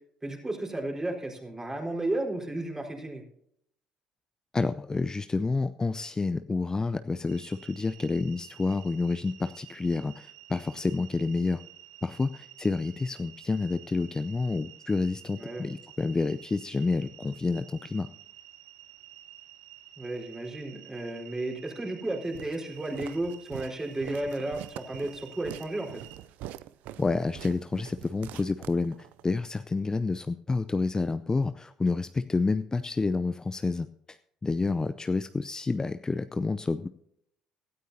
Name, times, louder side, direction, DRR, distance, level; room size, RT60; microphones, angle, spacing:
voice 1, 0.2-3.2 15.4-15.7 20.0-26.1, right 2 dB, 20° right, 1 dB, 4.4 m, -33 dB
voice 2, 4.5-11.6 12.0-18.1 27.0-28.9 29.2-34.2 34.4-36.9, left 3 dB, 25° left, 11 dB, 0.6 m, -29 dB
sound 1, 7.3-26.2, right 12 dB, 85° right, 1.2 m, -51 dB
Walk footsteps, 22.3-29.3, right 14 dB, 70° right, 0.5 m, -44 dB
17.5 x 13.0 x 2.8 m, 0.71 s
hypercardioid pair, 60°, 3 cm